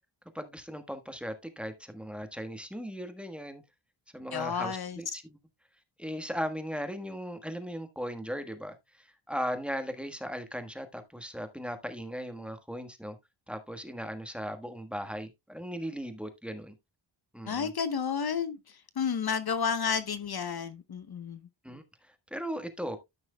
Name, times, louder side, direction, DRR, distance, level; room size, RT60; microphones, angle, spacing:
voice 1, 0.3-3.6 4.1-5.4 6.0-13.2 13.5-16.7 17.3-17.7 21.6-23.0, equal, ahead, 1.3 m, -38 dB
voice 2, 4.3-5.0 17.5-21.4, left 6 dB, 50° left, 0.9 m, -31 dB
13.5 x 6.2 x 2.2 m
wide cardioid pair, 105°, 48 cm